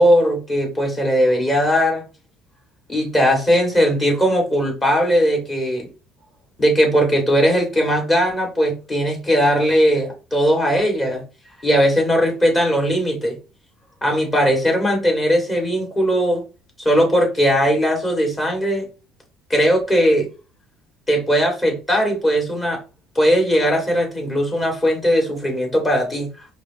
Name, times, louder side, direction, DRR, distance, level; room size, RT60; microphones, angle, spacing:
voice 1, 0.0-2.0 2.9-5.9 6.6-11.2 11.6-13.4 14.0-16.4 16.8-18.9 19.5-20.3 21.1-22.8 23.1-26.5, equal, 25° left, 0 dB, 2.4 m, -18 dB
4.7 x 3.0 x 3.0 m, 0.31 s
hypercardioid pair, 60°, 0 cm